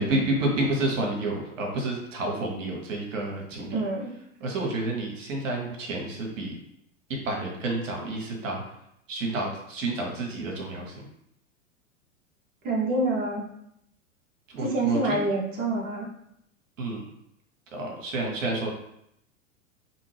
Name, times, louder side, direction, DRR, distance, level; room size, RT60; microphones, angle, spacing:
voice 1, 0.0-3.8 4.4-6.6 7.2-8.6 9.1-11.0 14.5-15.2 16.8-17.0 17.7-18.7, right 2 dB, 65° right, 0 dB, 0.9 m, -29 dB
voice 2, 3.7-4.1 12.6-13.4 14.6-16.1, right 2 dB, 25° right, -4 dB, 0.7 m, -27 dB
2.6 x 2.6 x 3.2 m, 0.76 s
figure-of-eight pair, 95°, 40 cm